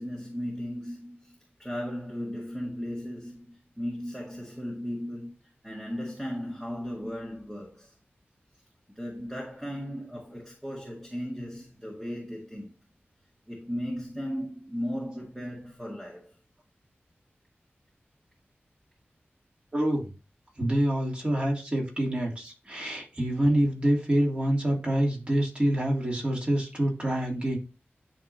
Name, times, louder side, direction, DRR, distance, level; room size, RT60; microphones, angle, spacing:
voice 1, 0.0-5.3 5.6-7.9 9.0-12.7 13.5-16.3 22.9-23.0 23.4-23.5, equal, 10° right, 1.9 m, -36 dB
voice 2, 19.7-20.1 20.6-27.6, right 1 dB, 30° right, 3.2 m, -26 dB
11.0 x 3.7 x 2.8 m
wide cardioid pair, 75°, 4 cm